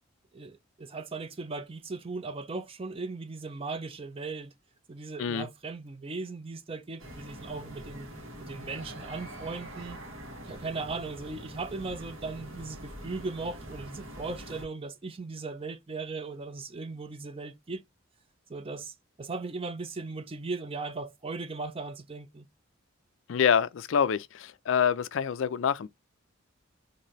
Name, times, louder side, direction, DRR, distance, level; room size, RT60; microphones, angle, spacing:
voice 1, 0.3-4.5 4.9-8.1 8.4-10.0 10.5-17.8 18.5-22.5, right 3 dB, 25° right, 0.5 m, -38 dB
sound 1, 7.0-14.7, equal, 75° right, 1.5 m, -44 dB
voice 2, 23.3-25.9, left 7 dB, 65° left, 0.4 m, -26 dB
4.0 x 2.6 x 3.1 m
head